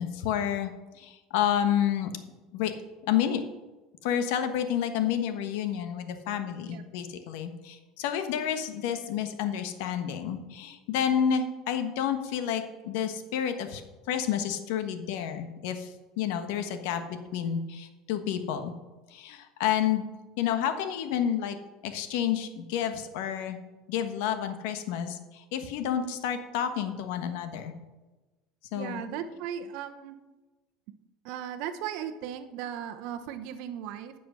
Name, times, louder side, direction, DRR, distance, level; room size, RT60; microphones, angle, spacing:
voice 1, 0.0-2.1 2.5-2.7 3.0-3.4 4.0-13.8 14.1-18.7 19.1-20.1 20.4-21.6 21.8-23.6 23.9-27.7 28.7-29.0, left 9 dB, 80° left, 8 dB, 1.2 m, -30 dB
voice 2, 28.7-30.2 31.2-34.1, right 9 dB, 70° right, 8 dB, 0.9 m, -37 dB
9.6 x 6.1 x 6.2 m, 1.2 s
supercardioid pair, 110°, 0 cm